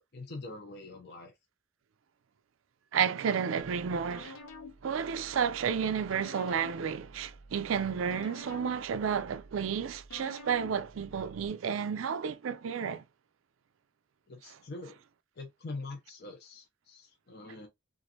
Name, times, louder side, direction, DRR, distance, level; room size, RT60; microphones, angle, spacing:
voice 1, 0.0-1.3 14.3-15.0 15.4-17.7, left 2 dB, 50° left, 0.6 m, -44 dB
voice 2, 2.9-4.4 4.8-13.0, right 7 dB, 80° right, 0.4 m, -31 dB
sound 1, 3.6-11.5, left 2 dB, 90° left, 0.7 m, -50 dB
3.0 x 2.5 x 2.7 m
head